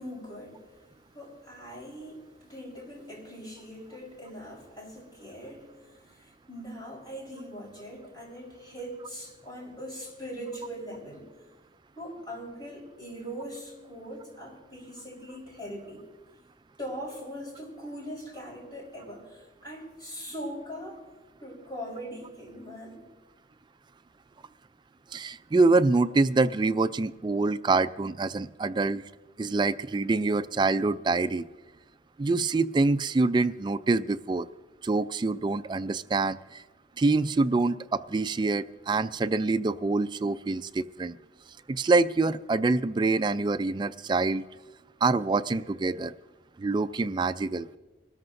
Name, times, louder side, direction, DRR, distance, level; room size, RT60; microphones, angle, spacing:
voice 1, 0.0-11.3 11.9-16.0 16.8-21.0 21.4-23.1, equal, 25° left, -3 dB, 4.3 m, -41 dB
voice 2, 25.1-29.0 29.4-31.4 32.2-34.5 34.8-36.6 37.0-41.2 41.7-44.4 45.0-46.1 46.6-47.7, right 3 dB, 25° right, 12 dB, 0.3 m, -25 dB
24.5 x 13.0 x 2.6 m, 1.2 s
head